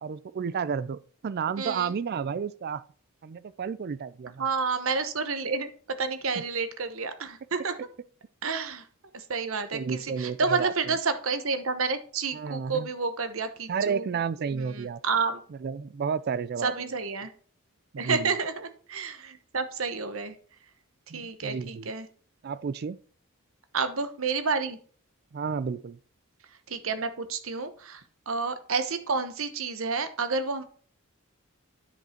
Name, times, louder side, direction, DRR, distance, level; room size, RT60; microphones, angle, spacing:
voice 1, 0.0-2.8 3.2-4.4 6.3-6.4 9.7-10.9 12.3-12.9 13.7-15.0 15.6-16.7 18.0-18.3 21.1-21.9 22.4-23.0 25.3-26.0, right 6 dB, 45° right, 0.4 m, -31 dB
voice 2, 1.6-1.9 4.4-5.7 6.0-7.8 8.4-8.9 9.1-14.1 14.5-15.4 16.6-17.3 18.0-20.4 21.1-22.1 23.7-24.8 26.7-30.6, right 4 dB, 65° right, 1.0 m, -30 dB
9.8 x 5.4 x 4.4 m
head